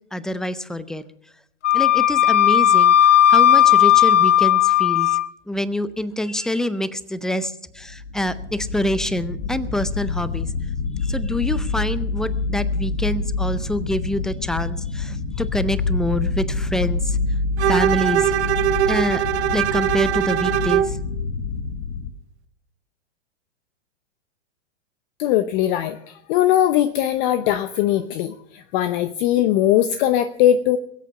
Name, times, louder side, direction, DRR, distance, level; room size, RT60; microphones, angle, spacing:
voice 1, 0.1-1.0 1.7-5.2 5.5-10.5 11.0-17.2 17.6-18.3 18.9-21.0, left 1 dB, ahead, 15 dB, 0.5 m, -26 dB
Wind instrument woodwind instrument, 1.6-5.3, left 11 dB, 85° left, 0.6 m, -15 dB
sound 1, 7.8-22.1, left 3 dB, 70° left, 1.4 m, -27 dB
Bowed string instrument, 17.6-21.0, right 11 dB, 65° right, 0.9 m, -21 dB
voice 2, 25.2-30.8, left 11 dB, 45° left, 12 dB, 0.8 m, -20 dB
22.0 x 8.3 x 5.7 m, 0.72 s
hypercardioid pair, 110°, 36 cm